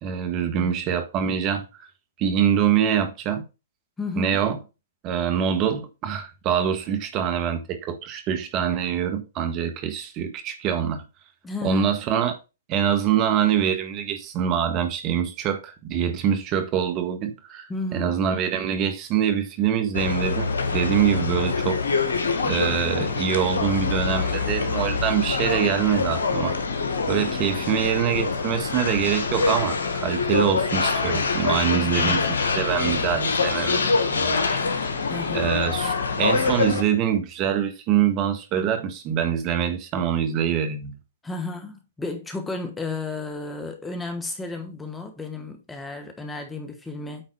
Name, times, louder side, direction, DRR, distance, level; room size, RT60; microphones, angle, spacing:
voice 1, 0.0-1.6 2.2-3.4 4.2-4.6 5.0-11.0 11.6-12.4 12.7-22.1 22.4-26.6 27.1-32.2 32.5-34.9 35.3-40.9, right 9 dB, 35° right, 1.6 m, -24 dB
voice 2, 4.0-4.4 11.4-11.9 17.7-18.2 31.7-32.3 35.1-35.5 41.2-47.3, left 3 dB, 10° left, 1.2 m, -33 dB
sound 1, 19.9-36.8, left 4 dB, 75° left, 1.4 m, -25 dB
8.9 x 4.0 x 4.7 m
hypercardioid pair, 120°, 0 cm